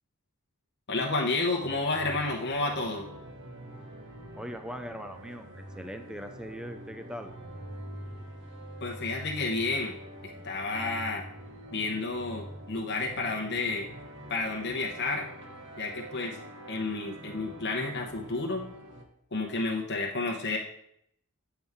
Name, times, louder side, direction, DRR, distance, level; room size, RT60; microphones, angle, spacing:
voice 1, 0.9-3.1 8.8-10.0 10.2-11.2 11.7-13.9 14.3-15.3 15.8-16.4 16.7-18.6 19.3-20.6, left 3 dB, 50° left, 0 dB, 0.9 m, -31 dB
sound 1, 1.6-19.1, right 1 dB, 55° right, 1.2 m, -45 dB
voice 2, 4.3-7.3, equal, 5° right, 6 dB, 0.4 m, -40 dB
9.2 x 7.0 x 3.6 m, 0.74 s
head